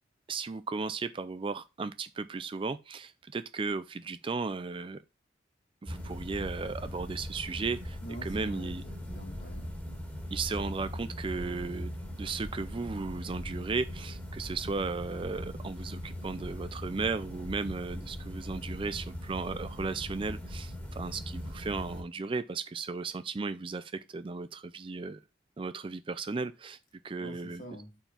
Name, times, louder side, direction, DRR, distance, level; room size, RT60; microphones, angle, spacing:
voice 1, 0.3-5.0 5.8-8.8 10.3-11.9 12.2-25.2 25.6-26.8 27.0-27.6, right 4 dB, 25° right, 0.4 m, -35 dB
sound 1, 5.9-22.0, equal, 10° left, 2.4 m, -40 dB
voice 2, 8.0-9.8 27.2-28.0, equal, 45° left, 2.2 m, -46 dB
5.7 x 4.5 x 5.5 m
head